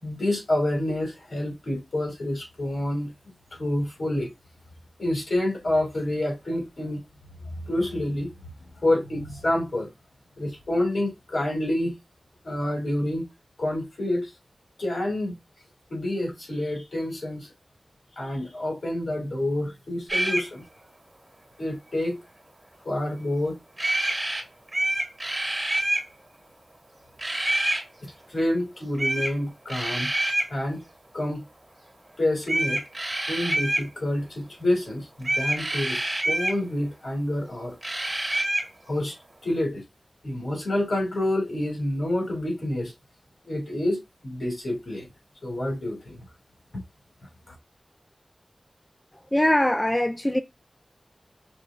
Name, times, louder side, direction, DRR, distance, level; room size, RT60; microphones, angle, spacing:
voice 1, 0.0-3.1 3.5-4.3 5.0-7.0 7.6-8.3 8.8-9.9 10.4-11.9 12.4-13.2 13.6-14.3 14.8-15.3 15.9-17.5 18.2-20.6 21.6-22.2 22.8-23.6 28.0-30.1 30.5-30.8 31.1-31.5 32.2-32.8 33.3-37.8 38.8-39.2 39.4-39.8 40.2-42.9 43.5-45.1 45.4-46.2 47.5-47.6, left 1 dB, 70° left, 2.8 m, -28 dB
sound 1, 20.1-20.5 23.8-24.4 24.7-26.1 27.2-27.8 29.0-29.3 29.7-30.5 32.4-33.9 35.2-36.6 37.8-38.7, right 1 dB, 30° right, 1.3 m, -26 dB
voice 2, 49.3-50.4, left 1 dB, 15° left, 0.3 m, -22 dB
5.3 x 2.2 x 3.7 m
wide cardioid pair, 75°, 0 cm